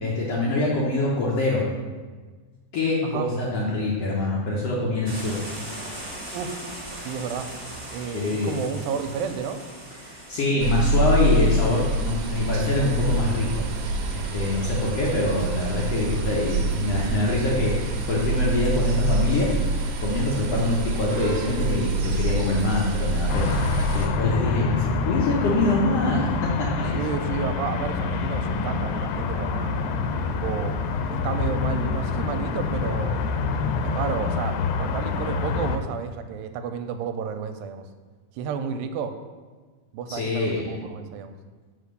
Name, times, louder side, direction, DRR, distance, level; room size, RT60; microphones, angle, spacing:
voice 1, 0.0-1.6 2.7-5.4 8.1-8.5 10.0-13.6 14.1-19.5 20.0-23.6 23.9-27.2 40.1-40.8, left 2 dB, 65° left, -4 dB, 1.6 m, -25 dB
sound 1, 5.0-10.5, right 1 dB, 25° right, 1.0 m, -38 dB
voice 2, 6.3-7.5 7.9-9.6 20.5-20.7 26.9-29.7 30.3-30.7 31.1-33.2 33.8-37.9 38.3-39.1 39.9-41.3, right 6 dB, 90° right, 8 dB, 2.4 m, -31 dB
sound 2, 10.6-24.1, right 2 dB, 70° right, 1.8 m, -26 dB
sound 3, 23.3-35.8, left 4 dB, 85° left, 2.4 m, -27 dB
5.8 x 5.0 x 6.6 m, 1.4 s
omnidirectional pair, 4.0 m